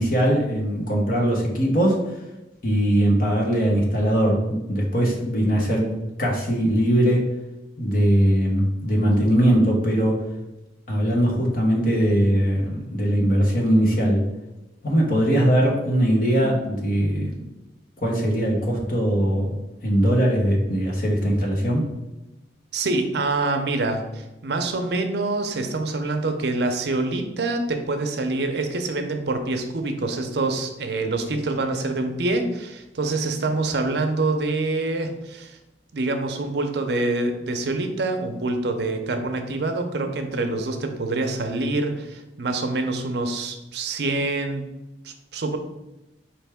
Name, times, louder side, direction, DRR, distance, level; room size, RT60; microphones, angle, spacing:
voice 1, 0.0-2.0 2.6-5.9 6.2-7.3 7.8-10.2 10.9-14.2 14.8-17.3 18.0-19.6 19.8-21.9, equal, 50° left, -1 dB, 1.1 m, -20 dB
voice 2, 22.7-35.6 35.9-44.7 45.0-45.6, right 2 dB, 65° right, 5 dB, 0.6 m, -26 dB
4.4 x 3.3 x 3.5 m, 0.98 s
head